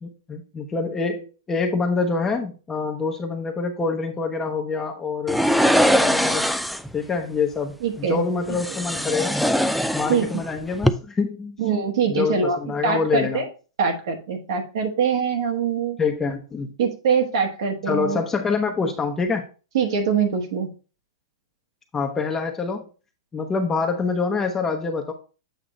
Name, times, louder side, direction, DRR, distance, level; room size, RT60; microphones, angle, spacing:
voice 1, 0.0-5.4 5.9-6.5 6.9-9.4 9.9-11.6 12.1-13.4 16.0-16.8 17.9-19.4 21.9-22.9 23.3-25.1, left 4 dB, 15° left, 2 dB, 0.8 m, -26 dB
sound 1, 5.3-6.9 8.5-10.5 10.7-10.9, equal, ahead, 0.4 m, -21 dB
voice 2, 7.8-8.2 10.1-10.3 11.6-12.6 12.8-13.5 13.8-16.0 16.8-18.2 19.7-20.7, right 6 dB, 70° right, 3 dB, 1.4 m, -23 dB
7.9 x 2.9 x 5.1 m, 0.35 s
hypercardioid pair, 130°, 3 cm